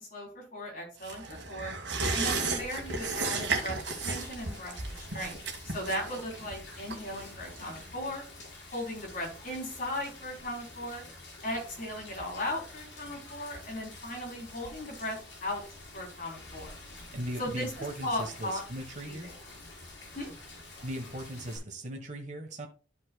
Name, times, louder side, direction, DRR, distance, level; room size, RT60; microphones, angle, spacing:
voice 1, 0.0-1.7 2.1-5.4 5.6-8.2 8.7-11.0 11.4-15.2 15.4-15.6 15.9-16.8 17.4-17.7 18.0-18.6 19.0-19.3 20.1-20.3, left 1 dB, 50° left, 3.4 m, -37 dB
sound 1, 1.0-8.1 8.4-8.5, right 3 dB, 75° right, 1.7 m, -34 dB
Rain, 2.3-21.6, left 2 dB, 80° left, 4.4 m, -48 dB
voice 2, 17.1-19.3 20.8-22.7, right 1 dB, 40° right, 1.3 m, -38 dB
12.5 x 5.4 x 2.3 m
head